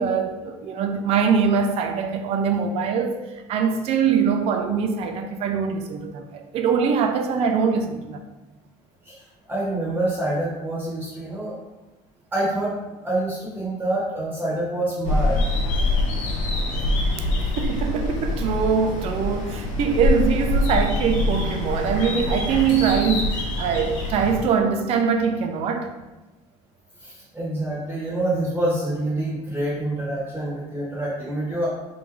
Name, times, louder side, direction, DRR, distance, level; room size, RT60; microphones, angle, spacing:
voice 1, 0.0-3.2 3.5-8.2 17.6-25.9, right 6 dB, 45° right, 0.4 m, -23 dB
voice 2, 9.0-11.5 12.3-12.7 13.0-15.4 27.0-31.7, right 1 dB, 10° right, 0.9 m, -26 dB
sound 1, 15.0-24.4, left 2 dB, 65° left, 0.9 m, -24 dB
3.8 x 2.6 x 4.4 m
cardioid pair, 170°, 14 cm